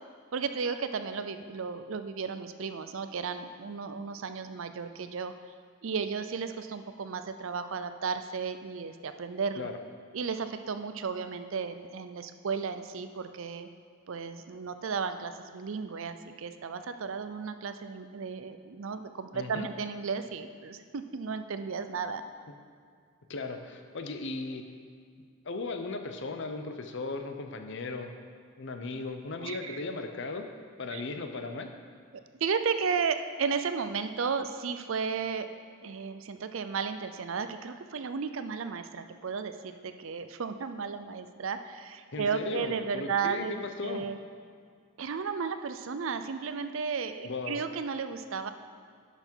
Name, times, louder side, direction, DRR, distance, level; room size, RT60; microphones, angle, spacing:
voice 1, 0.3-5.3 5.8-9.7 10.1-13.7 14.1-22.2 29.4-29.8 30.9-31.0 32.4-35.5 35.8-43.6 43.8-44.2 45.0-48.5, right 5 dB, 65° right, 9 dB, 0.5 m, -34 dB
voice 2, 19.3-19.7 23.3-24.7 25.4-28.1 28.6-30.5 30.8-31.7 42.1-44.1 47.2-47.6, left 3 dB, 55° left, 6 dB, 0.7 m, -37 dB
10.5 x 6.0 x 4.5 m, 2.1 s
head